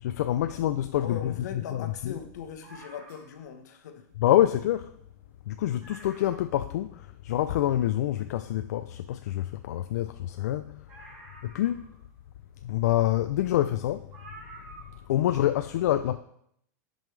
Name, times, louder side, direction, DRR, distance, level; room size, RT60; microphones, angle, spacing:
voice 1, 0.0-2.1 4.2-4.9 5.5-10.9 11.4-11.8 12.6-14.1 15.1-16.2, left 13 dB, 70° left, 0.4 m, -26 dB
voice 2, 1.0-4.1, left 7 dB, 85° left, 1.1 m, -40 dB
sound 1, 2.6-3.5 4.6-4.7 5.0-5.1 5.5-5.6 5.8-6.6 7.1-7.2 10.9-12.1 13.3-13.4 14.1-15.1 15.4-15.5, right 2 dB, 25° right, 2.1 m, -49 dB
12.0 x 5.4 x 3.3 m
supercardioid pair, 180°, 9 cm